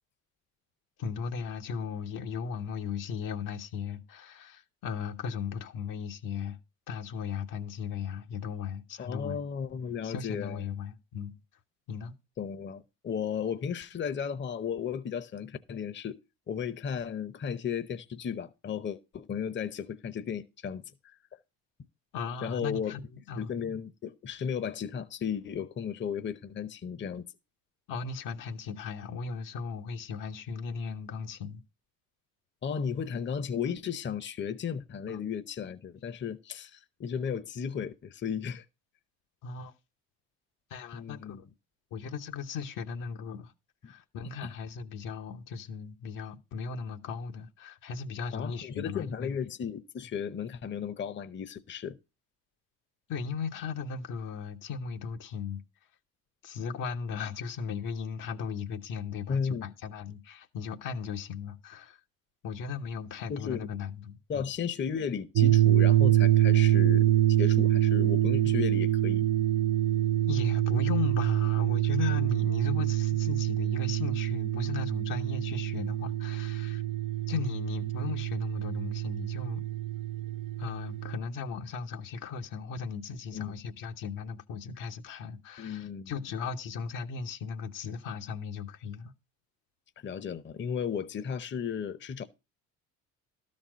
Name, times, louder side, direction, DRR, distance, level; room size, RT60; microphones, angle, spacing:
voice 1, 1.0-6.6 6.9-9.4 10.0-11.3 11.9-12.1 22.1-23.5 27.9-31.6 35.1-35.2 39.4-39.7 40.7-41.4 41.9-43.5 43.9-49.3 53.1-55.6 56.4-62.0 62.4-64.4 70.3-76.8 77.3-79.6 80.6-89.1, left 6 dB, 70° left, 1.1 m, -37 dB
voice 2, 9.0-10.6 12.4-16.2 16.5-21.2 22.4-22.9 23.4-27.2 32.6-38.6 40.9-41.4 43.8-43.9 44.4-44.5 48.3-52.0 59.3-59.6 63.3-63.7 64.3-69.3 83.3-83.5 85.6-86.1 90.0-92.2, left 7 dB, 35° left, 0.8 m, -34 dB
sound 1, 65.4-81.2, right 13 dB, 70° right, 0.6 m, -26 dB
12.5 x 4.3 x 6.2 m
supercardioid pair, 80°, 33 cm